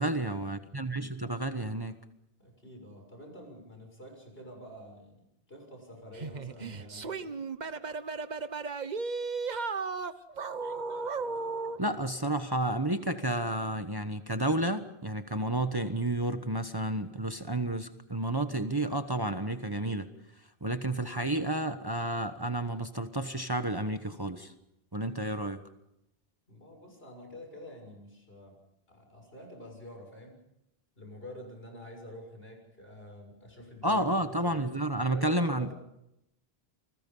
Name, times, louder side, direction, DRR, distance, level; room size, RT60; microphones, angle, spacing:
voice 1, 0.0-2.0 11.8-20.1 20.6-24.5 24.9-25.6 33.8-35.7, right 1 dB, 25° right, 8 dB, 1.1 m, -31 dB
voice 2, 2.4-7.4 26.5-28.6 28.9-30.4 31.0-34.0 34.4-34.7 35.1-35.7, left 1 dB, 70° left, 3 dB, 7.1 m, -47 dB
sound 1, 6.1-11.8, right 4 dB, 45° right, 1.1 m, -35 dB
28.5 x 21.0 x 5.5 m, 0.86 s
omnidirectional pair, 1.0 m